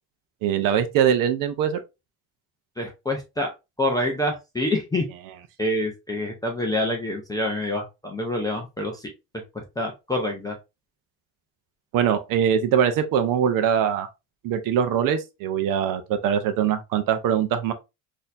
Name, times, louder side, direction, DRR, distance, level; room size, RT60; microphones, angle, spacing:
voice 1, 0.4-1.8 11.9-14.1 14.4-17.7, right 8 dB, 50° right, 0.6 m, -22 dB
voice 2, 2.8-3.5 3.8-5.0 5.6-9.1 9.5-10.6, left 1 dB, 10° left, 0.4 m, -26 dB
4.0 x 2.7 x 2.5 m
cardioid pair, 145°, 45 cm